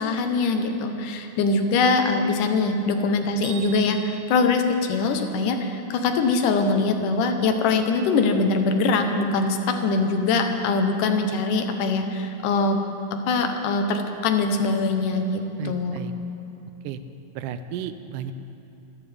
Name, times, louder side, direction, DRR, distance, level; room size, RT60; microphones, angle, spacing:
voice 1, 0.0-12.8 13.1-16.0, left 3 dB, 85° left, 6 dB, 2.6 m, -23 dB
Bell, 3.4-5.5, right 6 dB, 55° right, 3.7 m, -43 dB
voice 2, 15.6-16.1 16.8-17.0 17.4-18.3, right 9 dB, 85° right, 11 dB, 2.2 m, -33 dB
25.5 x 13.5 x 3.5 m, 2.8 s
omnidirectional pair, 3.6 m